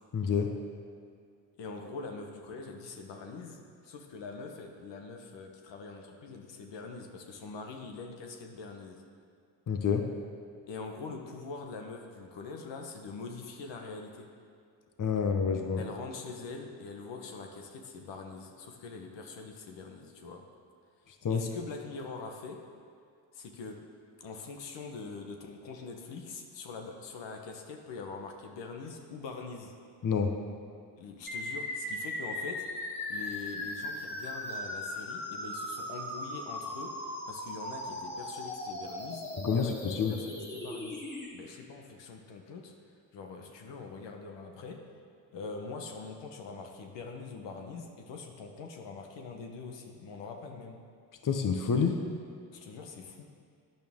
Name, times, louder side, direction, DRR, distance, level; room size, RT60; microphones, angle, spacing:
voice 1, 0.1-0.6 9.7-10.1 15.0-15.8 21.2-21.4 30.0-30.4 39.4-40.2 51.2-52.0, left 6 dB, 45° left, 5 dB, 1.1 m, -28 dB
voice 2, 1.6-9.0 10.7-14.3 15.8-20.5 21.3-22.6 23.3-23.9 24.2-29.7 31.0-32.7 33.1-39.8 40.1-41.0 41.3-42.7 43.1-44.8 45.3-50.8 52.5-53.3, left 4 dB, 75° left, 3 dB, 1.2 m, -43 dB
sound 1, 31.3-41.3, left 1 dB, 25° left, 3.0 m, -38 dB
14.0 x 9.1 x 3.7 m, 2.2 s
supercardioid pair, 55°, 44 cm